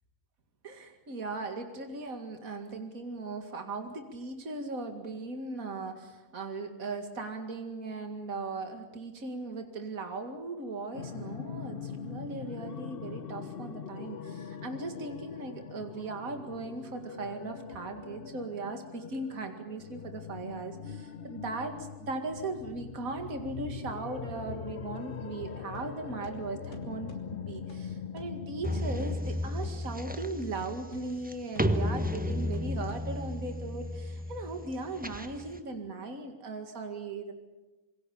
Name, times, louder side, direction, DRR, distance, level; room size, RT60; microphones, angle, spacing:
voice 1, 0.6-21.7 22.0-37.3, right 3 dB, 60° right, 5 dB, 2.6 m, -38 dB
sound 1, 10.9-29.2, left 6 dB, 45° left, 0.9 m, -42 dB
sound 2, 25.7-33.5, left 1 dB, 80° left, 3.7 m, -52 dB
sound 3, 28.6-35.6, left 1 dB, 5° right, 1.0 m, -33 dB
27.5 x 22.5 x 7.1 m, 1.1 s
omnidirectional pair, 1.7 m